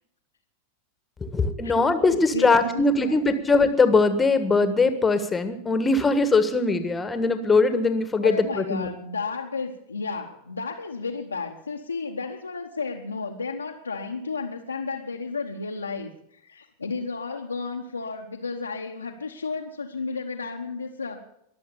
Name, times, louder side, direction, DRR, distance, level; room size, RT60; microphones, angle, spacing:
voice 1, 1.2-8.9, left 3 dB, 15° left, 10 dB, 1.5 m, -21 dB
voice 2, 2.1-3.4 8.2-21.2, left 4 dB, 80° left, 0 dB, 1.1 m, -33 dB
22.5 x 7.7 x 6.9 m, 0.76 s
figure-of-eight pair, 90°, 0 cm